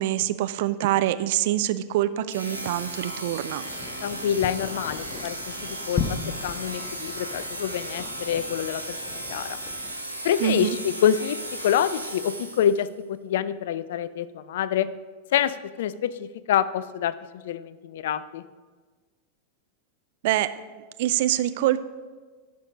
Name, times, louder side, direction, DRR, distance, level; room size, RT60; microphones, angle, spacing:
voice 1, 0.0-3.6 10.4-10.8 20.2-20.5 21.0-21.8, right 13 dB, 50° right, 13 dB, 0.4 m, -25 dB
sound 1, 2.3-12.9, right 1 dB, 90° left, 1.3 m, -36 dB
sound 2, 3.7-9.9, left 5 dB, 30° left, 0.8 m, -37 dB
voice 2, 4.0-9.6 10.2-14.9 15.3-17.1 17.4-18.4, left 9 dB, 55° left, 16 dB, 0.4 m, -27 dB
11.5 x 4.7 x 5.3 m, 1.4 s
figure-of-eight pair, 90°, 0 cm